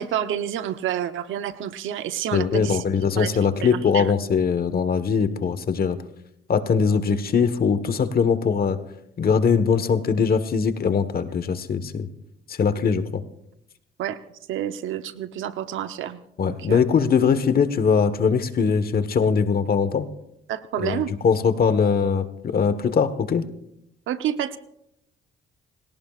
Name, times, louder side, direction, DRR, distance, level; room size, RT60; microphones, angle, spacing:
voice 1, 0.0-2.8 3.2-4.1 14.0-14.2 14.5-16.8 20.5-21.1 24.1-24.6, right 10 dB, 80° right, 10 dB, 0.9 m, -29 dB
voice 2, 2.3-6.0 6.5-8.8 9.2-12.1 12.5-13.2 16.4-20.1 20.8-23.4, left 6 dB, 50° left, 11 dB, 1.4 m, -21 dB
28.0 x 17.5 x 2.5 m, 0.80 s
cardioid pair, 90°, 20 cm